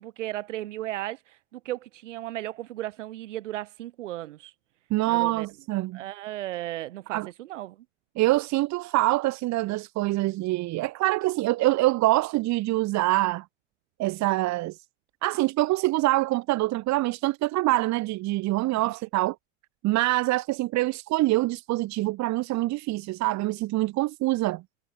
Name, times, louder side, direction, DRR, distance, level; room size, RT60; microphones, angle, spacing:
voice 1, 0.0-4.5 5.0-5.5 5.9-7.9 18.7-18.9, right 15 dB, 75° right, 7.5 m, -35 dB
voice 2, 4.9-6.0 7.1-7.3 8.2-13.4 14.0-14.8 15.2-19.4 19.8-24.6, right 18 dB, 50° right, 2.1 m, -25 dB
hypercardioid pair, 90°, 37 cm